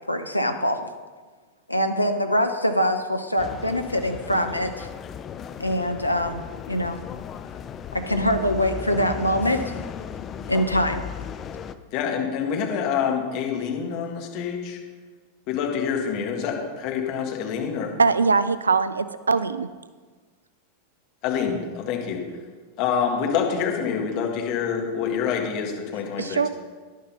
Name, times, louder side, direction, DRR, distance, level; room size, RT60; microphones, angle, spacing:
voice 1, 0.1-0.9 1.7-4.9 5.6-7.0 7.9-9.7 10.5-11.0, equal, 85° left, 6 dB, 0.6 m, -24 dB
sound 1, 3.4-11.7, left 8 dB, 25° left, 0.4 m, -36 dB
voice 2, 11.9-14.8 15.5-17.9 21.2-22.2 22.8-26.4, left 7 dB, 45° left, 1 dB, 1.7 m, -26 dB
voice 3, 18.0-19.7 26.2-26.5, right 4 dB, 75° right, 14 dB, 0.3 m, -21 dB
11.0 x 6.5 x 5.3 m, 1.4 s
figure-of-eight pair, 90°, 0 cm